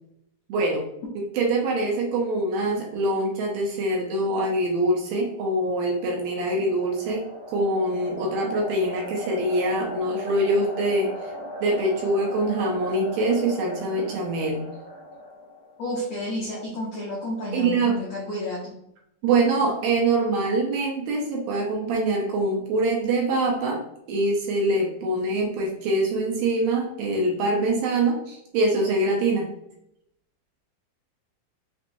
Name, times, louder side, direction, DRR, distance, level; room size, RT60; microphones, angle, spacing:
voice 1, 0.5-0.8 1.2-11.3 11.6-14.6 17.5-18.0 19.2-23.8 24.1-29.5, right 2 dB, 75° right, -1 dB, 2.2 m, -24 dB
sound 1, 5.1-15.9, left 1 dB, 45° right, 1.3 m, -38 dB
voice 2, 15.8-18.8, left 1 dB, 75° left, -7 dB, 1.5 m, -31 dB
6.1 x 2.9 x 2.6 m, 0.79 s
omnidirectional pair, 4.6 m